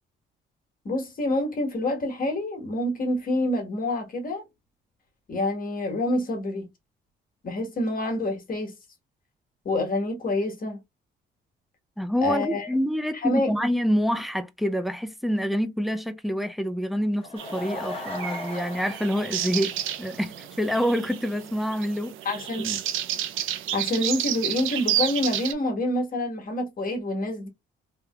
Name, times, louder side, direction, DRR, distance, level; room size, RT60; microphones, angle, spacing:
voice 1, 0.8-4.4 5.3-6.7 7.4-8.7 9.6-10.8 12.2-12.7 13.1-13.5 22.2-22.8 23.7-27.5, left 1 dB, 45° left, 1.5 m, -27 dB
voice 2, 12.0-19.7 20.0-22.1, equal, ahead, 0.5 m, -27 dB
Laughter / Crowd, 17.0-20.5 20.8-20.9 21.4-21.5 21.7-21.8, left 2 dB, 30° left, 1.1 m, -38 dB
sound 1, 17.4-25.5, right 12 dB, 85° right, 0.6 m, -31 dB
3.4 x 2.8 x 2.3 m
cardioid pair, 90°, 20 cm